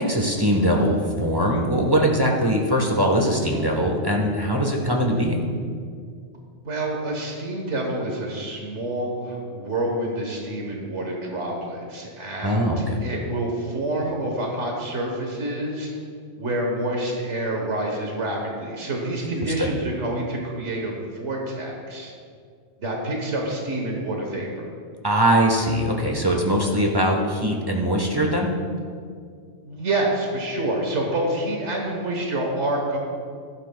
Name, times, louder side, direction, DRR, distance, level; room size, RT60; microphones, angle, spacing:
voice 1, 0.0-5.4 12.4-13.0 19.2-19.3 19.6-19.7 25.0-28.5, equal, 20° right, 0 dB, 1.1 m, -21 dB
voice 2, 6.6-15.9 16.4-22.1 22.8-24.6 29.6-33.0, right 1 dB, 85° right, 0 dB, 1.6 m, -27 dB
15.0 x 12.0 x 2.3 m, 2.2 s
omnidirectional pair, 1.2 m